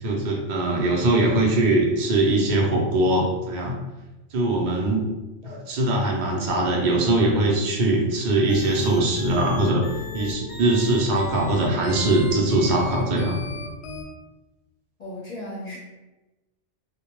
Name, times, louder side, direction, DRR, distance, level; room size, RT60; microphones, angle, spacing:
voice 1, 0.0-3.8 4.3-5.1 5.4-9.9 10.1-13.4, right 2 dB, 55° right, -1 dB, 0.5 m, -21 dB
sound 1, 8.3-14.0, left 2 dB, 70° left, 0.8 m, -36 dB
voice 2, 15.0-15.8, left 1 dB, 40° left, -6 dB, 0.7 m, -36 dB
2.1 x 2.0 x 2.9 m, 1.1 s
omnidirectional pair, 1.2 m